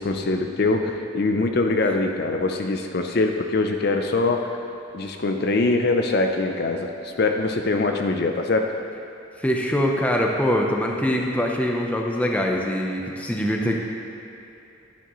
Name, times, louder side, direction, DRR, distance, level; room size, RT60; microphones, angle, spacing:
voice 1, 0.0-4.4 4.9-8.7, left 3 dB, 50° left, 4 dB, 0.5 m, -23 dB
voice 2, 9.4-13.8, equal, 5° left, 0 dB, 0.6 m, -23 dB
12.0 x 10.0 x 3.1 m, 2.7 s
head